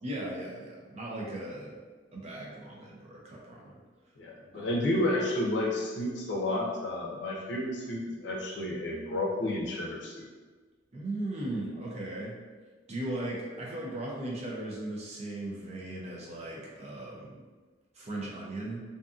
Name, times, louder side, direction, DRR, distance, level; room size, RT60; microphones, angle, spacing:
voice 1, 0.0-1.8 2.1-3.8 4.5-4.7 10.9-12.3 12.9-17.4 17.9-18.8, right 1 dB, 35° right, -3 dB, 0.5 m, -37 dB
voice 2, 4.2-10.3, left 1 dB, 65° left, -2 dB, 0.5 m, -31 dB
2.6 x 2.5 x 2.4 m, 1.4 s
head